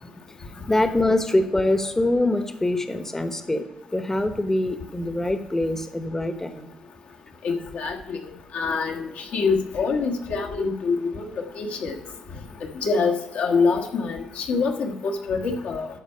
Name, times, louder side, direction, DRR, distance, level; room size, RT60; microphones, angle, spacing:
voice 1, 0.3-3.7 3.9-6.7, left 1 dB, 15° left, 8 dB, 0.9 m, -24 dB
voice 2, 7.4-8.2 8.5-11.9 12.8-15.9, left 4 dB, 70° left, 1 dB, 1.4 m, -25 dB
12.5 x 4.5 x 5.6 m, 0.92 s
supercardioid pair, 60°, 3 cm